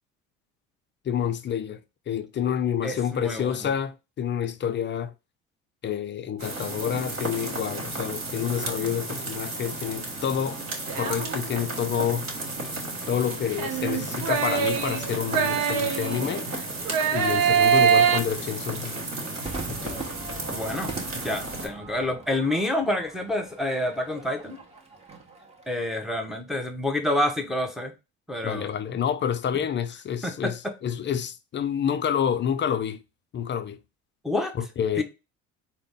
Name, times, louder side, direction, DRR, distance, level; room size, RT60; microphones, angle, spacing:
voice 1, 1.1-1.8 2.1-5.1 5.8-10.6 11.0-12.3 13.1-16.5 17.1-19.0 19.7-20.1 28.4-33.0 33.3-33.8 34.6-35.0, left 8 dB, 30° left, 0.4 m, -28 dB
voice 2, 2.8-3.6 20.5-24.6 25.7-27.9 28.3-28.7 30.2-30.7 34.2-34.5 35.0-35.1, left 1 dB, ahead, 0.8 m, -28 dB
sound 1, 6.4-21.7, right 2 dB, 45° right, 1.5 m, -34 dB
sound 2, 10.9-11.7 13.6-16.4 16.8-18.2, right 7 dB, 65° right, 0.8 m, -23 dB
Crowd / Fireworks, 19.5-26.0, right 3 dB, 15° right, 1.2 m, -41 dB
3.8 x 2.1 x 3.6 m
hypercardioid pair, 70°, 38 cm